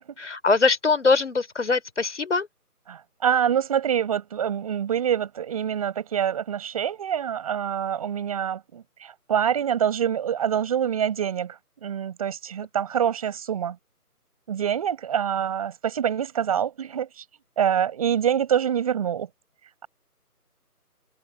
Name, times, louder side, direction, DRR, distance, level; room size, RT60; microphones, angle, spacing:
voice 1, 0.2-2.5, left 4 dB, 50° left, 4.1 m, -22 dB
voice 2, 2.9-13.8 14.5-17.2 17.6-19.3, right 9 dB, 25° right, 6.4 m, -25 dB
figure-of-eight pair, 160°, 46 cm